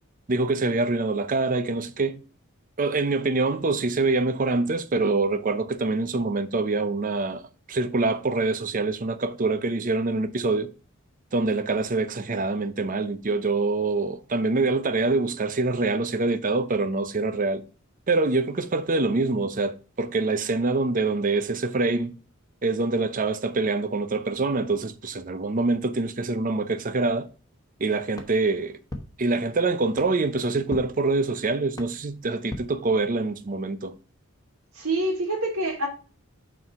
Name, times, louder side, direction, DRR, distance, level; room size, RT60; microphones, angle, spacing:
voice 1, 0.3-2.2 2.8-10.7 11.3-17.6 18.1-22.2 22.6-27.3 27.8-28.8 29.2-34.0, right 3 dB, 40° right, 0.6 m, -25 dB
sound 1, 28.1-33.5, left 1 dB, 15° left, 1.1 m, -43 dB
voice 2, 34.7-35.9, right 1 dB, 85° right, 2.9 m, -26 dB
5.9 x 4.7 x 5.4 m
head